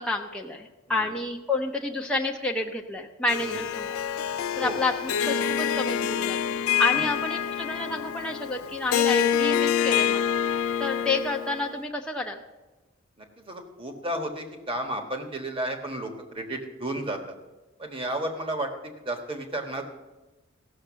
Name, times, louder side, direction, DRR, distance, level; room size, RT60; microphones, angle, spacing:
voice 1, 0.0-3.9 4.6-10.3 10.8-12.4, left 2 dB, 5° left, 0 dB, 0.6 m, -29 dB
Harp, 3.3-11.7, left 9 dB, 85° left, 0.4 m, -26 dB
voice 2, 13.2-17.2 17.8-18.7 19.0-19.9, right 1 dB, 25° right, 4 dB, 1.3 m, -33 dB
15.5 x 6.5 x 6.3 m, 1.1 s
head